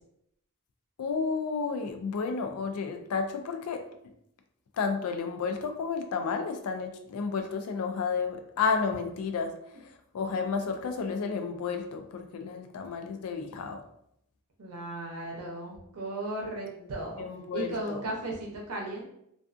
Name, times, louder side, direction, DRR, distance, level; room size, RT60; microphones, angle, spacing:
voice 1, 1.0-3.8 4.8-9.5 10.1-13.8 17.2-18.0, left 5 dB, 75° left, 6 dB, 0.4 m, -31 dB
voice 2, 14.6-17.2 17.5-19.0, right 2 dB, 85° right, -2 dB, 0.7 m, -36 dB
2.4 x 2.4 x 2.4 m, 0.76 s
head